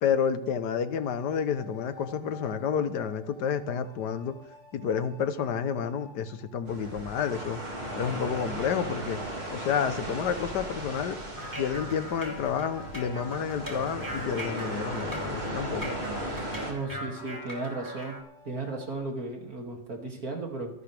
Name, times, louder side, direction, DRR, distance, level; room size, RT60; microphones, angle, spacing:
voice 1, 0.0-4.3 4.7-7.6 8.0-9.2 9.5-11.2 11.6-15.9, left 7 dB, 65° left, 11 dB, 1.6 m, -30 dB
sound 1, 0.8-19.0, left 4 dB, 35° left, 6.7 m, -53 dB
sound 2, 6.7-16.7, right 1 dB, 30° right, 3.6 m, -36 dB
sound 3, 11.4-18.2, equal, 10° right, 3.0 m, -40 dB
voice 2, 16.7-18.2 18.4-20.7, right 3 dB, 50° right, 1 dB, 3.0 m, -35 dB
25.5 x 12.0 x 3.5 m, 0.78 s
omnidirectional pair, 2.0 m